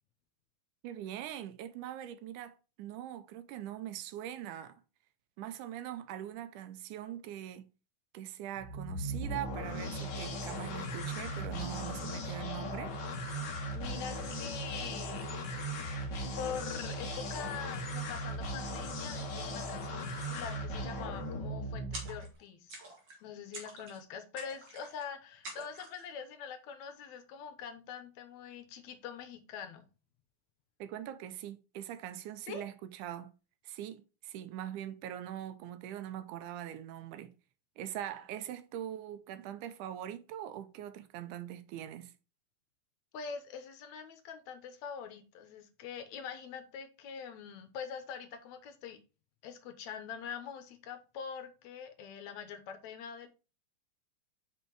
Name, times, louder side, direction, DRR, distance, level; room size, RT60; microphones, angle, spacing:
voice 1, 0.8-4.8 5.4-7.7 8.1-13.0 30.8-33.3 33.6-37.4 37.8-42.1, right 11 dB, 85° right, 2.1 m, -42 dB
sound 1, 8.6-22.3, equal, 50° left, 1.4 m, -38 dB
voice 2, 13.7-15.4 16.4-22.8 23.2-29.9 32.5-32.6 43.1-49.0 49.4-53.3, left 7 dB, 70° left, 2.1 m, -44 dB
sound 2, 21.9-22.4 22.7-23.2 23.5-24.0 24.4-25.0 25.4-26.1, right 2 dB, 45° right, 2.1 m, -46 dB
5.5 x 5.4 x 4.6 m
omnidirectional pair, 3.5 m